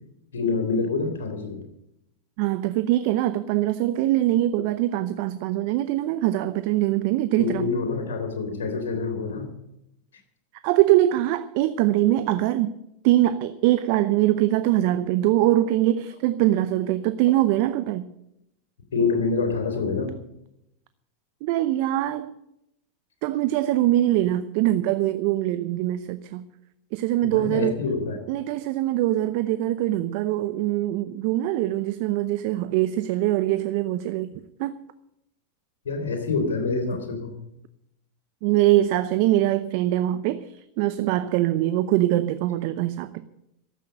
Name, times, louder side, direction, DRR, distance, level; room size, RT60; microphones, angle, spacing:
voice 1, 0.3-1.7 7.4-9.5 18.9-20.2 27.2-28.2 35.9-37.3, left 4 dB, 80° left, 4 dB, 3.5 m, -26 dB
voice 2, 2.4-7.7 10.6-12.7 13.0-18.1 21.4-22.3 23.2-26.4 26.9-27.8 28.3-34.3 34.6-34.8 38.4-43.2, right 14 dB, 60° right, 13 dB, 0.7 m, -23 dB
12.5 x 8.4 x 9.1 m, 0.83 s
hypercardioid pair, 95°, 0 cm